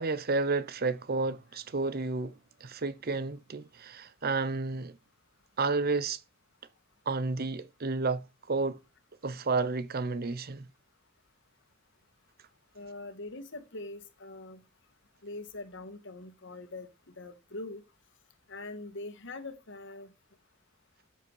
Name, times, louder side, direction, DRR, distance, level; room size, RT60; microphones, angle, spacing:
voice 1, 0.0-5.0 5.6-6.2 7.1-8.8 9.2-10.7, right 3 dB, 45° right, 0.8 m, -31 dB
voice 2, 12.7-14.6 15.2-17.8 18.5-20.1, left 2 dB, 60° left, 1.8 m, -43 dB
13.5 x 7.4 x 4.7 m
head